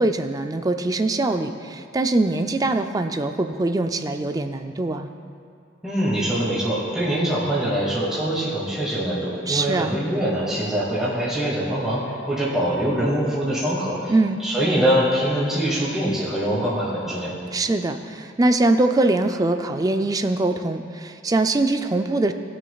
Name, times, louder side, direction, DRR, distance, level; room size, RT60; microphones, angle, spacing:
voice 1, 0.0-5.1 9.5-10.0 14.1-14.4 17.5-22.3, right 2 dB, 20° right, 7 dB, 0.4 m, -22 dB
voice 2, 5.8-14.1 14.4-17.3, right 1 dB, 5° right, -9 dB, 2.1 m, -23 dB
19.5 x 6.6 x 2.3 m, 2.4 s
head